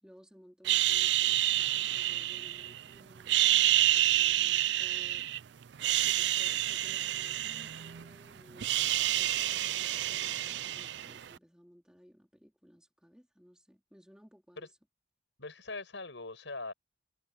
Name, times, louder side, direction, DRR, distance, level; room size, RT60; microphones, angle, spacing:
voice 1, 0.0-5.3 6.0-14.7, equal, 5° right, 3.5 m, -58 dB
woman sexy shhh, 0.7-2.8 3.2-5.4 5.7-8.1 8.4-11.3, right 14 dB, 70° right, 0.4 m, -28 dB
voice 2, 15.4-16.7, left 3 dB, 85° left, 5.8 m, -41 dB
head